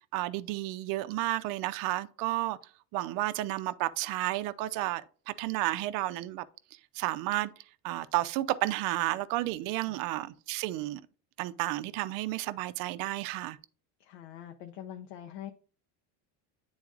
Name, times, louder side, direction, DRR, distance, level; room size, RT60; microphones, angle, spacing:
voice 1, 0.1-2.6 2.9-5.0 5.3-6.4 6.9-7.5 7.8-11.0 11.4-13.6, right 17 dB, 70° right, 0.5 m, -32 dB
voice 2, 14.0-15.5, left 10 dB, 80° left, 0.7 m, -44 dB
9.7 x 3.9 x 2.4 m
cardioid pair, 140°, 35 cm